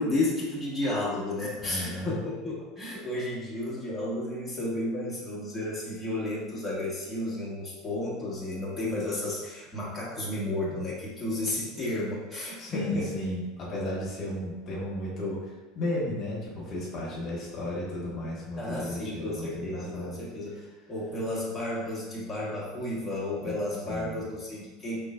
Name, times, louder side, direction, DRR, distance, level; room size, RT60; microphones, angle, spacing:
voice 1, 0.0-13.1 18.6-20.6 20.9-25.0, left 1 dB, 10° left, -8 dB, 1.2 m, -32 dB
voice 2, 1.6-2.1 12.6-20.2 23.4-23.5 23.9-24.2, left 1 dB, 45° left, -5 dB, 1.2 m, -34 dB
3.7 x 3.3 x 2.3 m, 1.2 s
hypercardioid pair, 90°, 0 cm